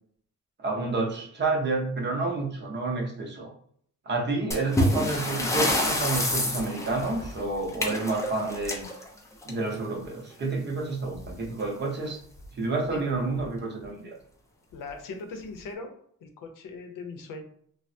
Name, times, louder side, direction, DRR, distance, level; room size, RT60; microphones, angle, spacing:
voice 1, 0.6-3.5 4.1-8.9 9.5-12.2 12.5-14.2, right 3 dB, 35° right, 1 dB, 0.6 m, -29 dB
sound 1, 4.5-9.9 11.1-11.3 11.6-11.7 12.4-12.5 13.1-13.4, left 1 dB, 10° left, 0.4 m, -28 dB
voice 2, 14.7-15.9 16.2-17.4, left 4 dB, 85° left, 5 dB, 0.7 m, -39 dB
3.3 x 2.0 x 2.6 m, 0.63 s
wide cardioid pair, 165°, 32 cm